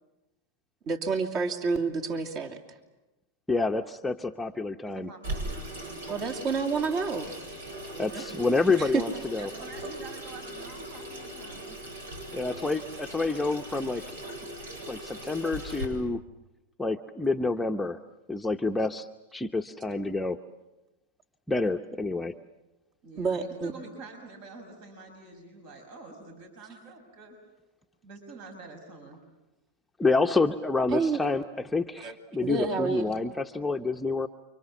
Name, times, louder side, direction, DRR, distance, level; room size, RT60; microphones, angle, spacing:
voice 1, 0.9-2.6 6.1-7.4 8.8-9.0 23.2-23.7 30.9-31.2 32.0-32.1 32.4-33.1, right 4 dB, 40° right, 5 dB, 2.8 m, -29 dB
voice 2, 3.5-5.1 8.0-9.5 12.3-14.0 14.9-16.2 16.8-18.0 18.3-20.4 21.5-22.3 30.0-34.3, left 3 dB, 5° left, 3 dB, 0.9 m, -28 dB
voice 3, 4.9-6.3 7.9-8.3 8.6-8.7 9.4-11.8 23.0-27.4 28.0-29.2, right 3 dB, 55° right, 4 dB, 5.7 m, -47 dB
Water tap faucet / Sink (filling or washing), 5.2-15.9, right 1 dB, 80° right, 7.9 m, -39 dB
29.5 x 25.5 x 7.3 m, 1.0 s
hypercardioid pair, 115°, 0 cm